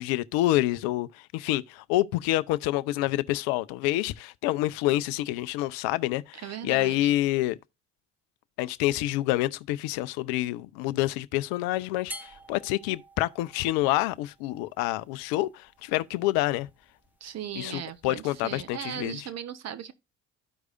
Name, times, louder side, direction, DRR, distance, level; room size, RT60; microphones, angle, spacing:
voice 1, 0.0-7.6 8.6-16.7 17.6-19.2, left 16 dB, 65° left, 0.6 m, -27 dB
voice 2, 6.3-7.1 17.2-19.9, right 9 dB, 40° right, 1.0 m, -38 dB
sound 1, 12.1-19.1, equal, 5° right, 1.0 m, -50 dB
13.5 x 4.7 x 2.4 m
hypercardioid pair, 65°, 39 cm